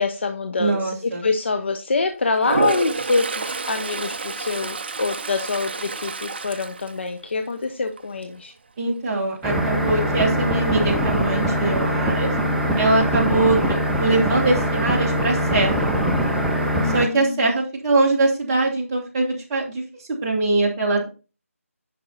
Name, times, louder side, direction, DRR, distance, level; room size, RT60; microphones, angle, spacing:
voice 1, 0.0-0.9 1.2-8.5 16.7-17.5, left 4 dB, 50° left, 6 dB, 0.9 m, -25 dB
voice 2, 0.6-1.3 8.8-12.3 12.8-15.9 16.8-19.8 20.2-21.1, right 2 dB, 20° right, -2 dB, 2.1 m, -22 dB
Toilet flush, 2.4-7.6 8.0-8.3 12.8-12.9 13.2-13.9, right 4 dB, 45° right, 0.6 m, -29 dB
sound 1, 9.4-17.1, equal, ahead, 0.4 m, -22 dB
10.0 x 5.5 x 3.9 m, 0.32 s
figure-of-eight pair, 160°, 8 cm